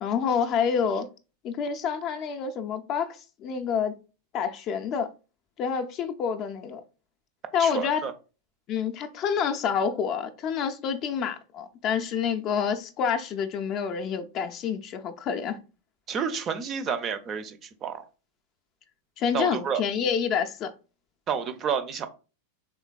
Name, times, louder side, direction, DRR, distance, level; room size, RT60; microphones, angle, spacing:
voice 1, 0.0-1.1 1.4-3.9 4.3-5.1 5.6-6.8 7.5-8.1 8.7-15.6 19.2-20.7, left 7 dB, 35° left, 0.4 m, -28 dB
voice 2, 7.6-8.1 16.1-18.0 19.3-19.8 21.3-22.1, right 7 dB, 30° right, 0.5 m, -30 dB
3.7 x 3.3 x 2.3 m
figure-of-eight pair, 90°, 0 cm